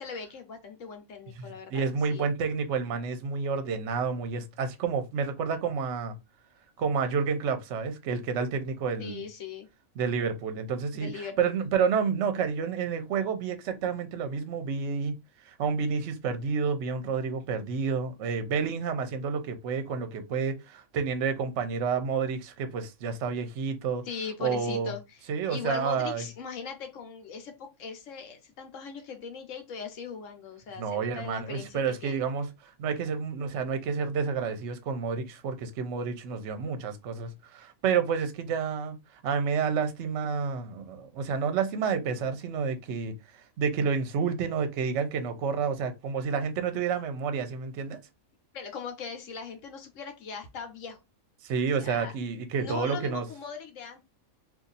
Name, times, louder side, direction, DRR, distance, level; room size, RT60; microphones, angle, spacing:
voice 1, 0.0-2.3 9.0-9.7 10.9-11.5 24.0-25.2 25.5-32.2 48.5-51.0 51.8-52.1 52.6-54.0, left 6 dB, 65° left, 1.1 m, -40 dB
voice 2, 1.4-6.1 6.8-9.2 10.0-15.1 15.5-24.0 24.4-24.9 25.3-26.2 30.8-39.0 39.2-43.1 43.6-48.0 51.4-53.3, right 6 dB, 60° right, 0.9 m, -29 dB
2.6 x 2.6 x 3.9 m
omnidirectional pair, 1.5 m